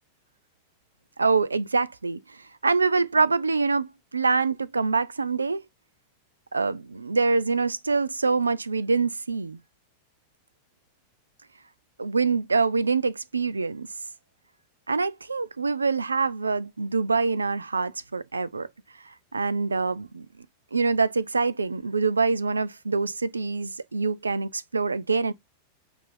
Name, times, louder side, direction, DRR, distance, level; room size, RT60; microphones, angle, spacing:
voice 1, 1.2-2.2 2.6-5.6 6.5-9.6 12.0-13.9 14.9-18.7 19.3-20.3 20.7-25.3, right 4 dB, 75° right, 0.4 m, -25 dB
7.4 x 2.6 x 2.5 m
figure-of-eight pair, 90°, 0 cm